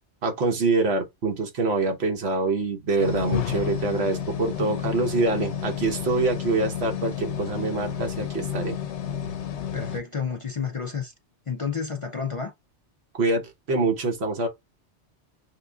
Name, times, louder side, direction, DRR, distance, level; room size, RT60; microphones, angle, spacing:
voice 1, 0.2-8.8 13.2-14.5, right 3 dB, 65° right, 1.3 m, -25 dB
sound 1, 3.0-10.0, left 9 dB, 80° left, 0.9 m, -31 dB
voice 2, 9.7-11.1 11.5-12.5, left 6 dB, 50° left, 0.4 m, -30 dB
6.5 x 2.5 x 2.3 m
omnidirectional pair, 1.2 m